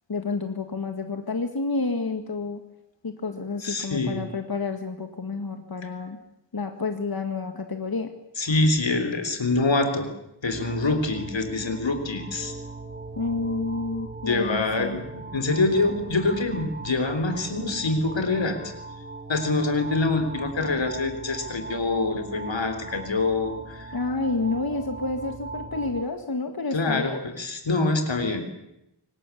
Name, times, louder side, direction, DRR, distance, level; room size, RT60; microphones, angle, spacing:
voice 1, 0.1-2.6 3.0-6.2 6.5-8.1 13.2-15.0 23.9-27.2, left 3 dB, 55° left, 6 dB, 1.9 m, -29 dB
voice 2, 3.6-4.3 8.4-10.1 10.4-12.5 14.3-18.6 19.3-24.0 26.7-28.4, left 3 dB, 85° left, 7 dB, 3.7 m, -25 dB
sound 1, 10.5-26.0, right 3 dB, 25° right, 2.9 m, -39 dB
26.0 x 19.0 x 8.5 m, 0.85 s
wide cardioid pair, 80°, 44 cm